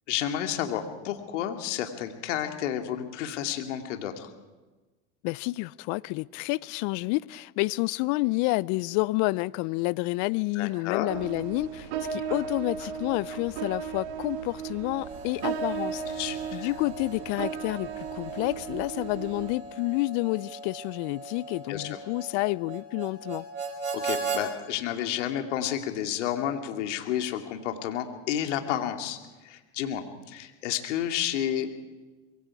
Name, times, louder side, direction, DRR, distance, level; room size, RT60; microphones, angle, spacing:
voice 1, 0.1-4.3 10.6-11.1 16.2-16.7 21.7-22.0 23.9-29.2 29.4-31.7, left 10 dB, 70° left, 2.6 m, -31 dB
voice 2, 5.2-16.0 16.5-23.5, left 22 dB, 50° left, 0.6 m, -29 dB
sound 1, 11.1-19.5, right 7 dB, 60° right, 2.4 m, -35 dB
Harmonica, 14.9-24.4, right 4 dB, 90° right, 4.9 m, -38 dB
25.0 x 22.5 x 4.9 m
hypercardioid pair, 90°, 37 cm